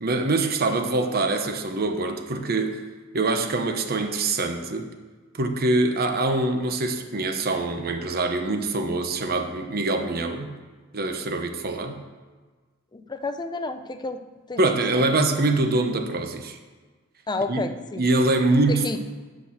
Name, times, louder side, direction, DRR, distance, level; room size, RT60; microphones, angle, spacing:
voice 1, 0.0-2.8 3.1-4.9 5.3-10.5 10.9-12.0 14.6-16.6 17.5-17.6 18.0-19.0, right 2 dB, 45° right, 6 dB, 1.0 m, -24 dB
voice 2, 12.9-14.2 14.5-14.6 14.9-15.1 17.3-18.0 18.7-19.0, left 3 dB, 20° left, 9 dB, 0.5 m, -30 dB
8.5 x 6.3 x 6.4 m, 1.4 s
head